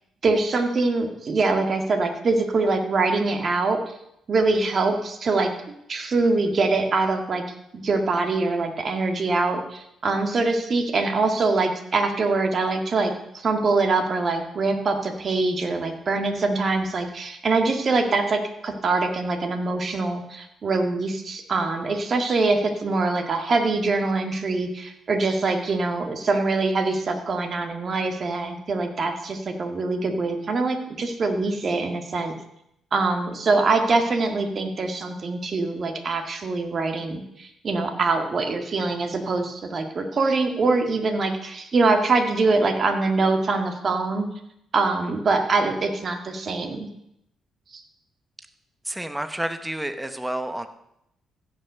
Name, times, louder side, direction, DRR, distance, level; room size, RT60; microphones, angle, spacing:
voice 1, 0.2-3.9 4.3-5.5 5.9-7.4 7.7-32.3 32.9-44.3 44.7-46.9 47.7-47.8, right 3 dB, 45° right, 5 dB, 1.8 m, -24 dB
voice 2, 48.8-50.7, right 1 dB, 10° right, 9 dB, 1.0 m, -29 dB
15.5 x 5.6 x 6.7 m, 0.80 s
cardioid pair, 90°, 0 cm